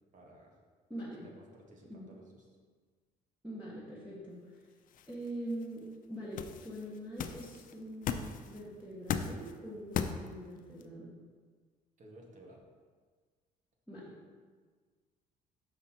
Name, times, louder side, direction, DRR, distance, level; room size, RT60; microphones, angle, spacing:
voice 1, 0.1-0.6 1.2-2.6 12.0-12.6, right 1 dB, 50° right, 0 dB, 1.5 m, -56 dB
voice 2, 0.9-1.2 1.8-2.1 3.4-4.5 5.1-11.1 13.9-14.1, right 1 dB, 10° right, -8 dB, 1.5 m, -43 dB
sound 1, 4.6-10.9, left 7 dB, 55° left, 0.5 m, -39 dB
6.2 x 5.2 x 4.4 m, 1.5 s
cardioid pair, 110°, 17 cm